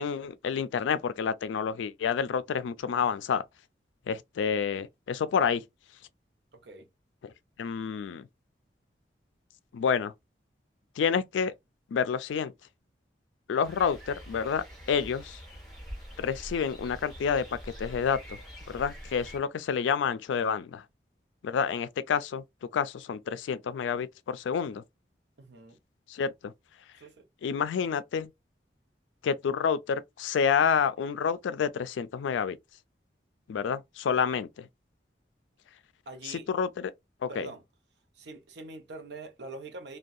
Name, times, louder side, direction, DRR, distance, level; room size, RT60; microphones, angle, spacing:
voice 1, 0.0-3.4 4.1-5.6 7.6-8.2 9.7-10.1 11.0-11.5 11.9-12.5 13.5-15.4 16.2-17.4 17.8-18.4 18.7-20.8 21.4-22.4 22.7-24.8 26.1-26.5 27.4-28.3 29.2-32.6 33.5-34.7 36.3-36.9 37.2-37.5, left 6 dB, 85° left, 0.3 m, -29 dB
voice 2, 6.5-6.9 25.4-25.8 27.0-27.3 36.1-36.5 37.3-37.6 38.1-40.0, right 3 dB, 70° right, 0.6 m, -44 dB
sound 1, 13.6-19.4, equal, ahead, 1.3 m, -45 dB
2.6 x 2.2 x 2.3 m
head